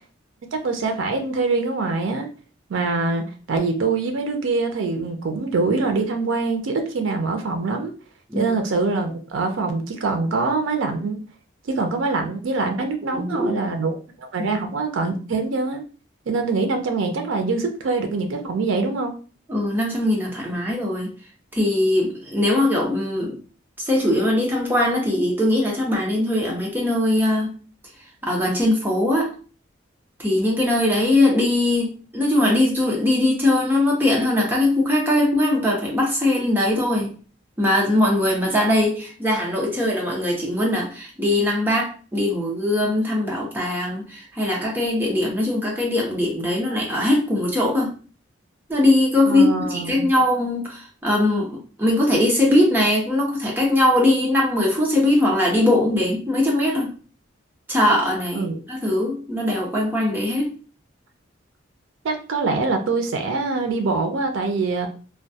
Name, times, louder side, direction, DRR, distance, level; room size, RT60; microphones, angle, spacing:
voice 1, 0.5-2.3 2.7-7.9 8.3-11.2 11.7-15.8 16.3-19.1 49.3-50.1 58.3-58.6 62.0-64.9, right 3 dB, 80° right, 5 dB, 0.4 m, -24 dB
voice 2, 13.1-13.7 14.4-14.5 19.5-21.1 21.5-23.4 23.8-27.5 28.2-29.3 30.2-37.1 37.6-47.9 48.7-56.9 57.7-60.5, left 1 dB, 10° right, -2 dB, 0.6 m, -21 dB
2.2 x 2.2 x 2.7 m, 0.38 s
head